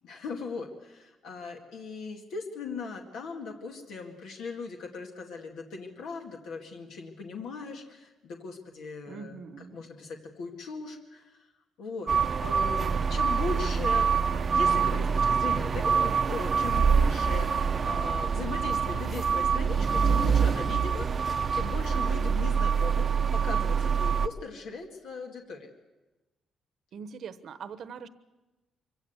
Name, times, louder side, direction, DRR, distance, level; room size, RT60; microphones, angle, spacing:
voice 1, 0.0-9.4 9.7-11.5 11.8-12.1 12.4-25.7, left 4 dB, 80° left, 2 dB, 2.1 m, -39 dB
voice 2, 9.1-9.8 23.5-23.8 26.9-28.1, right 6 dB, 65° right, 14 dB, 1.1 m, -42 dB
sound 1, 12.1-24.3, right 6 dB, 40° right, 0.7 m, -25 dB
24.0 x 16.0 x 8.1 m, 1.1 s
cardioid pair, 90°, 0 cm